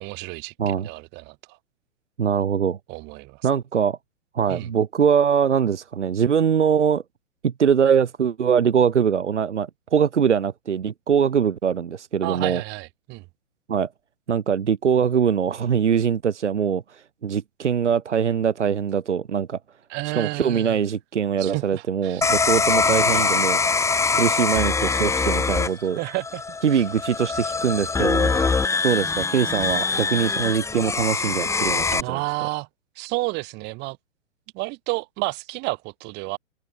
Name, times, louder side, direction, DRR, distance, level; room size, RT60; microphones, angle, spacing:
voice 1, 0.0-1.6 2.9-3.5 4.5-4.7 12.2-13.2 19.9-20.8 21.4-22.3 22.8-23.3 26.0-26.4 26.7-26.8 28.3-28.5 32.0-32.7 32.9-34.0 34.5-36.4, right 25 dB, 30° right, 1.7 m, -31 dB
voice 2, 2.2-2.8 3.4-4.0 4.3-7.0 7.4-12.6 13.7-13.9 14.3-19.6 20.1-23.6 24.2-26.0 26.6-32.2, right 7 dB, 75° right, 0.7 m, -22 dB
sound 1, 22.2-32.0, left 4 dB, 10° left, 1.9 m, -23 dB
open air
figure-of-eight pair, 105°, 35 cm